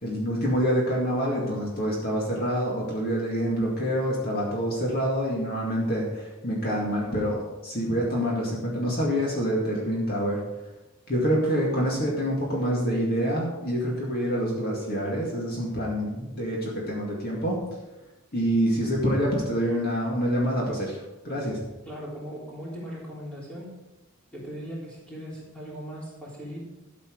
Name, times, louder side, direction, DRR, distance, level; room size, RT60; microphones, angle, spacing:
voice 1, 0.0-10.4 11.1-17.6 18.3-21.6, equal, 45° left, -3 dB, 2.2 m, -26 dB
voice 2, 21.9-23.7 24.3-26.6, equal, 5° left, -6 dB, 3.5 m, -38 dB
12.5 x 7.5 x 4.7 m, 1.0 s
head